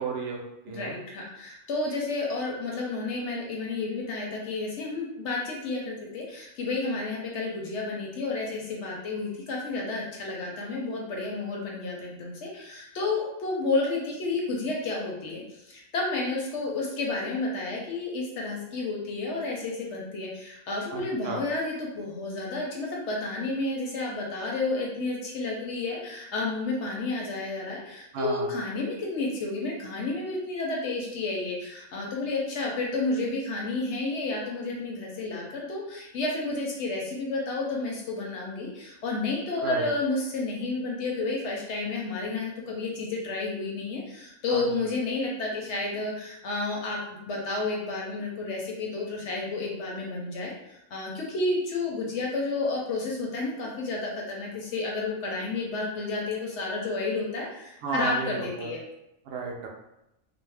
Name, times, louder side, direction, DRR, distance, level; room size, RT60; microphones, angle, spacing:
voice 1, 0.0-0.9 20.9-21.4 28.1-28.5 39.6-39.9 44.5-44.7 57.8-58.7 59.3-59.7, right 4 dB, 65° right, 0 dB, 0.6 m, -33 dB
voice 2, 0.7-58.8, left 3 dB, 65° left, -2 dB, 0.8 m, -31 dB
2.5 x 2.0 x 3.2 m, 0.86 s
omnidirectional pair, 1.5 m